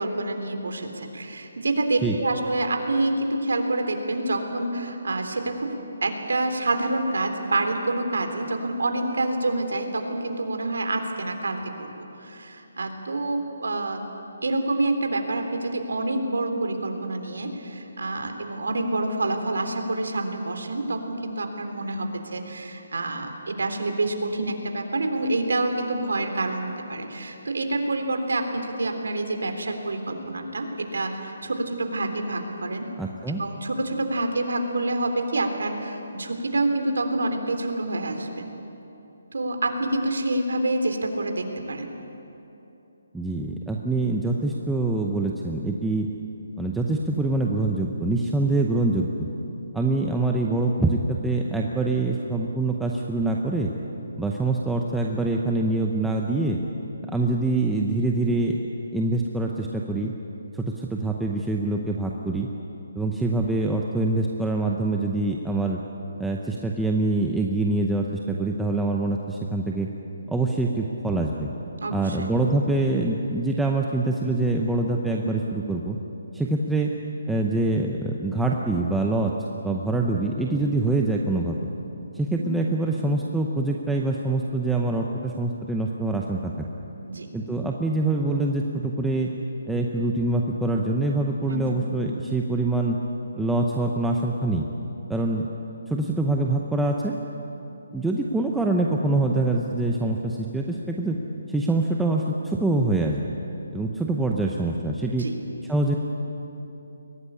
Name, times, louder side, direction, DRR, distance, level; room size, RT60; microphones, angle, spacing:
voice 1, 0.0-5.7 6.0-11.9 12.2-14.1 14.4-32.8 33.4-38.4 39.3-41.9 71.8-72.3 82.4-82.6 87.0-87.3 91.5-91.8 105.2-105.3, right 2 dB, 85° right, 5 dB, 3.5 m, -27 dB
voice 2, 33.0-33.4 43.1-46.1 46.6-49.3 49.7-53.7 54.2-56.6 57.1-58.6 58.9-60.1 60.5-62.5 63.0-65.8 66.2-69.9 70.3-71.5 71.9-76.0 76.3-76.9 77.3-79.3 79.6-81.6 82.1-86.7 87.3-89.3 89.7-93.0 93.4-94.7 95.1-95.4 95.9-97.1 97.9-101.2 101.5-103.4 103.7-105.3 105.7-106.0, right 2 dB, 5° right, -1 dB, 0.7 m, -25 dB
23.0 x 17.5 x 9.9 m, 3.0 s
hypercardioid pair, 175°, 0 cm